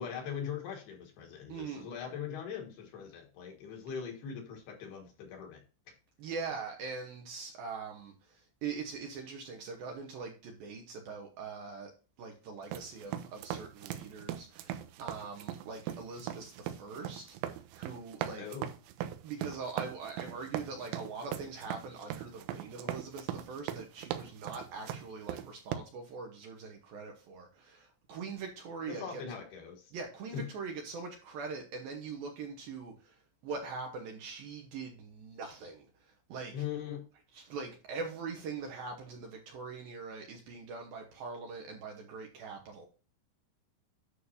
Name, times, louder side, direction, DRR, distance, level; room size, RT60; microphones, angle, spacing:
voice 1, 0.0-5.6 18.4-18.7 28.9-29.9 30.3-30.5 36.5-37.0, left 7 dB, 65° left, 3.1 m, -41 dB
voice 2, 1.5-1.9 6.2-11.9 12.2-18.5 19.2-29.2 29.9-36.6 37.3-42.9, right 4 dB, 70° right, 2.4 m, -42 dB
sound 1, 12.6-25.8, right 11 dB, 85° right, 3.1 m, -40 dB
9.8 x 6.4 x 2.7 m
omnidirectional pair, 5.4 m